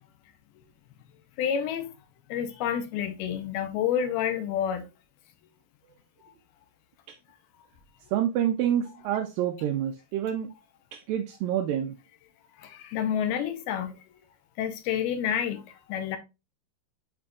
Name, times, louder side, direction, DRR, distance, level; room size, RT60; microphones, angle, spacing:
voice 1, 1.4-1.9 2.3-4.9 12.6-14.0 14.6-15.6 15.9-16.2, left 9 dB, 80° left, 2.6 m, -29 dB
voice 2, 8.1-10.5 10.9-11.9, right 10 dB, 85° right, 2.0 m, -27 dB
7.3 x 6.0 x 2.4 m
omnidirectional pair, 4.6 m